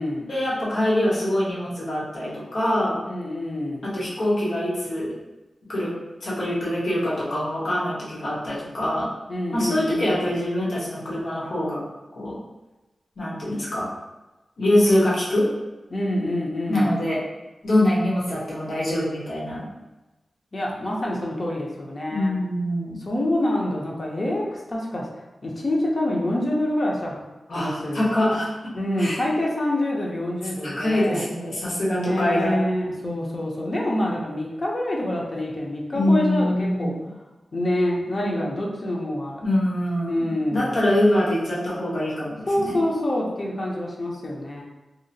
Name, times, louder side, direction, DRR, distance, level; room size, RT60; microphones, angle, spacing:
voice 1, 0.3-3.0 3.8-5.1 5.7-5.9 6.2-9.1 9.5-11.8 12.1-12.4 13.2-13.9 14.6-15.5 16.7-17.2 17.6-19.6 22.1-23.0 27.5-28.5 29.0-29.2 30.6-32.6 35.9-36.9 39.4-42.8, left 1 dB, 70° left, -8 dB, 1.0 m, -24 dB
voice 2, 3.0-3.8 9.3-10.3 15.9-17.0 20.5-22.4 23.1-25.1 25.4-27.2 27.5-28.1 28.7-31.2 31.9-37.0 37.5-39.4 40.1-40.8 42.5-44.6, left 1 dB, 40° left, -2 dB, 0.6 m, -26 dB
2.8 x 2.4 x 2.6 m, 1.1 s
wide cardioid pair, 100°, 0 cm